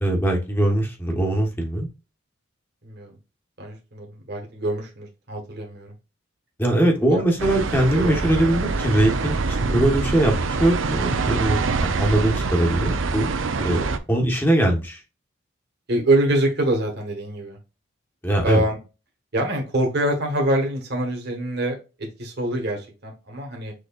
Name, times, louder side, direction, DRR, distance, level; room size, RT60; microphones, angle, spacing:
voice 1, 0.0-1.9 6.6-13.3 13.6-13.8 14.1-15.0 18.2-18.6, right 1 dB, 10° left, 1 dB, 1.1 m, -21 dB
voice 2, 2.8-3.2 3.6-5.9 7.1-7.2 7.9-8.2 10.9-11.2 13.5-14.0 15.9-17.6 18.4-18.8 19.3-23.7, right 1 dB, 55° right, 1 dB, 1.5 m, -25 dB
sound 1, 7.4-14.0, right 4 dB, 75° right, 0.6 m, -25 dB
6.4 x 3.1 x 2.4 m, 0.29 s
head